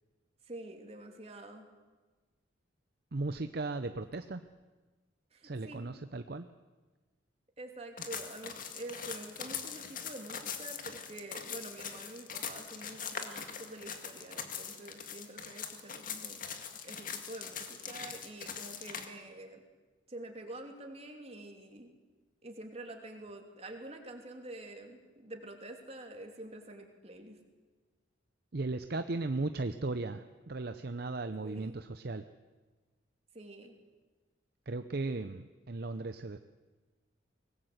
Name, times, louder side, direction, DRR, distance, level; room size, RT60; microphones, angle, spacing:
voice 1, 0.4-1.7 5.3-6.0 7.6-16.4 16.8-19.6 20.1-21.9 22.4-27.4 31.4-31.8 33.3-33.8, right 1 dB, 30° right, 3 dB, 3.0 m, -47 dB
voice 2, 3.1-4.4 5.4-6.4 28.5-32.2 34.7-36.4, right 2 dB, 55° right, 10 dB, 0.7 m, -36 dB
sound 1, 8.0-19.0, left 7 dB, 45° left, 2.1 m, -42 dB
24.0 x 19.5 x 8.1 m, 1.3 s
head